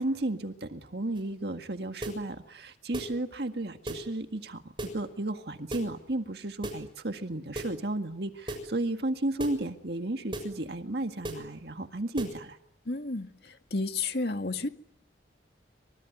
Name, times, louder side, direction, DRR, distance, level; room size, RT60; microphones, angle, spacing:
voice 1, 0.0-4.6 4.9-12.6, right 1 dB, 60° right, 6 dB, 1.9 m, -33 dB
sound 1, 1.1-1.3 2.0-2.2 2.9-3.2 3.8-4.1 4.8-5.0 5.7-5.9 6.6-6.9 7.5-7.8 8.5-8.7 9.4-9.6 10.3-10.5 11.2-11.5 12.2-12.4, right 1 dB, 25° right, 6.7 m, -36 dB
voice 2, 12.9-14.7, left 3 dB, 55° left, 6 dB, 2.1 m, -32 dB
26.0 x 24.5 x 9.4 m, 0.76 s
head